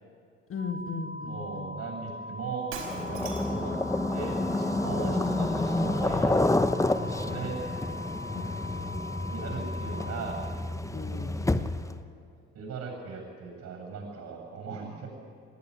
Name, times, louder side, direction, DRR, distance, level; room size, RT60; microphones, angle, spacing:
voice 1, 0.5-1.7 7.2-7.5 8.1-8.6 10.9-11.7, left 4 dB, 45° left, 5 dB, 2.4 m, -38 dB
sound 1, 0.6-10.4, left 1 dB, 35° right, 2.8 m, -41 dB
voice 2, 1.2-3.7 4.1-6.6 7.0-7.6 9.3-10.5 12.5-15.1, right 5 dB, 60° right, 2 dB, 7.8 m, -38 dB
Shatter, 2.7-3.7, right 6 dB, 80° right, 5.0 m, -40 dB
sound 2, 2.8-12.0, left 2 dB, 10° left, 1.0 m, -29 dB
18.5 x 16.0 x 10.0 m, 2.4 s
hypercardioid pair, 65°, 30 cm